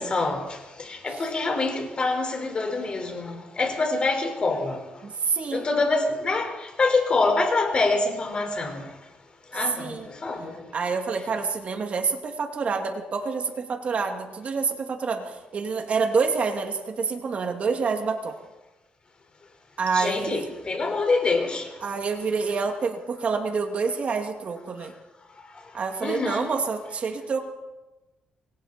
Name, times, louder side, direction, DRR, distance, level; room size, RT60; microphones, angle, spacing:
voice 1, 0.0-5.1 5.5-9.0 9.5-10.6 19.9-21.8 24.8-24.9 25.5-26.5, left 3 dB, 35° left, 5.1 m, -26 dB
voice 2, 5.0-5.6 9.8-10.1 10.7-18.4 19.8-20.5 21.8-24.9 25.7-27.4, right 5 dB, 50° right, 2.5 m, -27 dB
27.0 x 22.5 x 4.4 m
cardioid pair, 100°, 3 cm